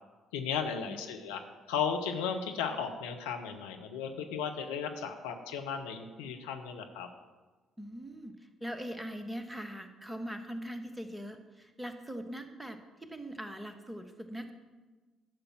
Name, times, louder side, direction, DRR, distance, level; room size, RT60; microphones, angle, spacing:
voice 1, 0.3-1.4 1.7-7.1, left 7 dB, 70° left, 4 dB, 0.9 m, -35 dB
voice 2, 7.8-8.3 8.6-14.5, equal, 10° right, 7 dB, 1.4 m, -41 dB
12.0 x 6.7 x 7.5 m, 1.3 s
figure-of-eight pair, 45°, 0 cm